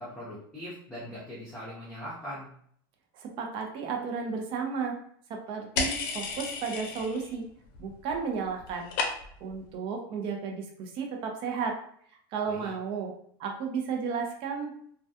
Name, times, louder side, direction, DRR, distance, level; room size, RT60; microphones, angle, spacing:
voice 1, 0.0-2.5 12.4-12.7, equal, 5° left, -9 dB, 0.8 m, -41 dB
voice 2, 3.1-5.0 5.3-7.5 7.8-8.9 9.4-11.8 12.3-13.1 13.4-14.9, right 5 dB, 45° right, 2 dB, 0.6 m, -33 dB
sound 1, 5.8-7.4 7.6-8.2 8.4-9.5, left 4 dB, 65° left, 0.6 m, -33 dB
2.2 x 2.2 x 2.7 m, 0.64 s
supercardioid pair, 130°, 13 cm